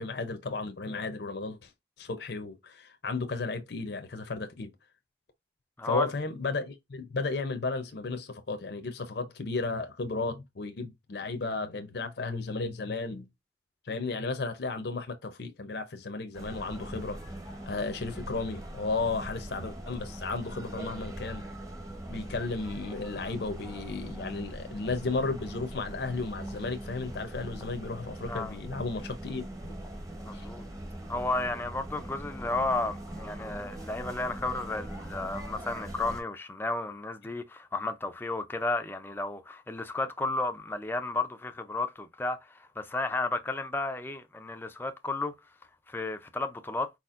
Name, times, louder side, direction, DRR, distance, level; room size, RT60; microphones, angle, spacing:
voice 1, 0.0-1.7 2.0-4.7 5.8-13.3 13.8-17.2 17.7-21.4 22.1-29.7 30.3-30.5, left 3 dB, 60° left, 0.6 m, -34 dB
voice 2, 5.8-6.1 28.3-28.5 30.2-30.6 31.1-45.3 45.9-46.9, left 2 dB, 10° left, 0.4 m, -33 dB
sound 1, 16.3-36.2, right 1 dB, 20° right, 0.9 m, -41 dB
4.6 x 4.2 x 2.4 m
head